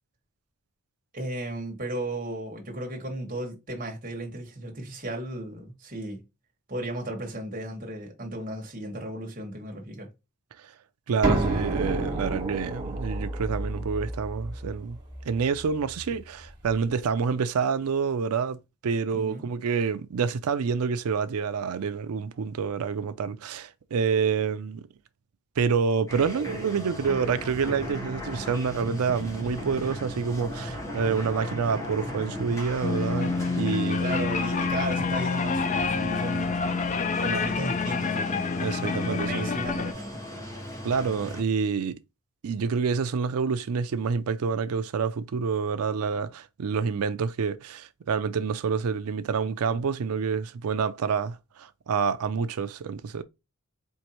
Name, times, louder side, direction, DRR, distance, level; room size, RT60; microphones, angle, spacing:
voice 1, 1.1-6.2 6.7-10.1 19.1-19.5 34.0-36.6 37.2-38.4 39.0-40.4, right 1 dB, 35° right, 1.3 m, -35 dB
voice 2, 11.1-15.0 15.3-24.8 25.6-34.0 38.6-39.5 40.8-42.0 42.4-53.2, right 5 dB, 90° right, 0.4 m, -28 dB
sound 1, 11.2-16.8, right 2 dB, 20° right, 1.6 m, -31 dB
sound 2, 26.1-41.4, equal, 15° left, 0.9 m, -37 dB
sound 3, 32.8-39.9, left 4 dB, 35° left, 0.3 m, -28 dB
4.5 x 2.6 x 2.9 m
head